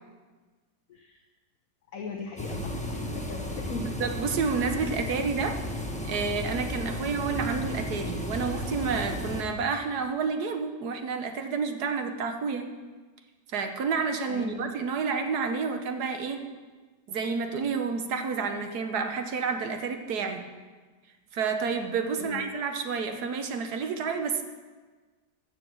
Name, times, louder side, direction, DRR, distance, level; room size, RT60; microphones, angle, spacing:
voice 1, 0.9-1.2 1.9-3.8 14.3-14.6 22.1-22.4, left 5 dB, 65° left, 2 dB, 1.3 m, -39 dB
sound 1, 2.4-9.4, left 1 dB, 5° left, 1.0 m, -34 dB
voice 2, 4.0-5.6 6.1-12.7 13.5-16.5 17.1-20.4 21.3-24.4, right 5 dB, 75° right, 6 dB, 1.6 m, -30 dB
14.5 x 6.7 x 6.1 m, 1.4 s
omnidirectional pair, 1.7 m